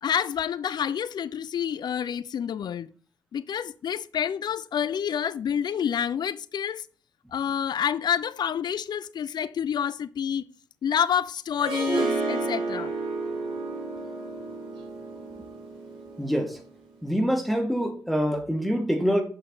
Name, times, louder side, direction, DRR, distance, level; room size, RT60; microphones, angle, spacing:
voice 1, 0.0-2.9 3.3-6.9 7.3-10.4 10.8-12.9, left 8 dB, 65° left, 0.4 m, -28 dB
Harp, 11.6-16.7, right 3 dB, 85° right, 2.2 m, -31 dB
voice 2, 16.2-16.6 17.0-19.2, equal, ahead, 1.6 m, -25 dB
5.8 x 5.5 x 3.8 m
supercardioid pair, 45°, 8 cm